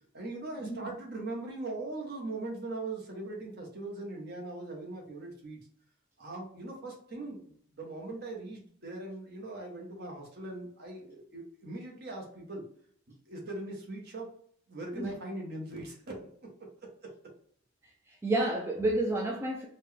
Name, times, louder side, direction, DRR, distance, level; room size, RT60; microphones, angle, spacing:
voice 1, 0.1-5.6 6.2-7.4 7.7-12.6 13.3-14.3 14.7-16.2, right 2 dB, 45° right, 0 dB, 0.9 m, -40 dB
voice 2, 18.1-19.7, right 2 dB, 10° right, -1 dB, 0.3 m, -30 dB
4.1 x 2.2 x 3.2 m, 0.63 s
head